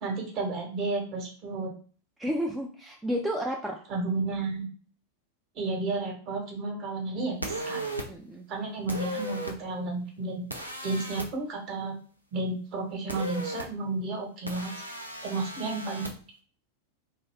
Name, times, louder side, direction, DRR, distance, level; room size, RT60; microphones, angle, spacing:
voice 1, 0.0-1.7 3.9-4.7 5.5-7.8 8.5-10.4 10.8-11.9 12.3-14.7 15.2-16.1, right 3 dB, 35° right, 1 dB, 1.0 m, -32 dB
voice 2, 2.2-3.8 8.1-8.5, equal, 5° right, 0 dB, 0.3 m, -31 dB
sound 1, 7.4-8.0 8.9-9.5 10.5-11.3 13.1-13.6 14.5-16.1, right 1 dB, 85° right, 0.5 m, -35 dB
2.6 x 2.2 x 3.3 m, 0.42 s
figure-of-eight pair, 90°, 0 cm